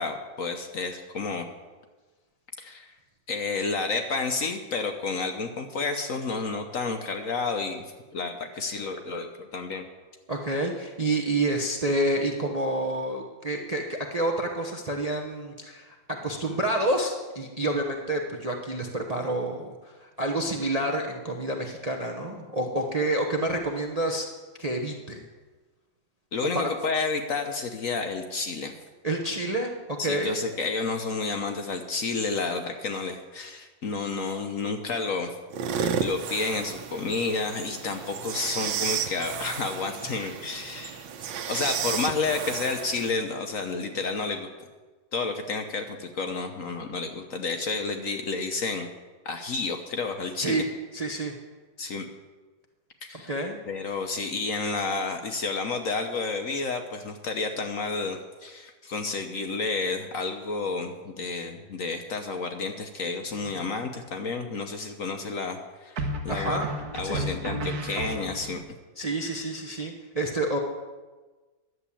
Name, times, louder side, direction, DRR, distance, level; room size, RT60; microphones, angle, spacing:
voice 1, 0.0-1.5 2.6-2.9 3.3-9.9 26.3-28.7 30.0-35.3 36.0-41.1 41.5-44.5 45.1-48.9 49.2-50.6 51.8-52.1 53.0-53.3 53.7-66.6 66.9-68.6, left 4 dB, 55° left, 5 dB, 1.1 m, -30 dB
voice 2, 10.3-24.3 24.6-25.2 26.5-26.7 29.0-30.4 50.4-50.7 50.9-51.4 53.2-53.6 66.3-66.7 67.0-67.4 69.0-70.6, right 1 dB, 30° right, 1 dB, 0.7 m, -28 dB
sound 1, 35.5-43.1, right 7 dB, 90° right, 1.6 m, -32 dB
sound 2, 63.3-63.9 66.0-68.6, right 1 dB, 60° right, 1.5 m, -33 dB
11.0 x 7.4 x 8.4 m, 1.3 s
omnidirectional pair, 2.0 m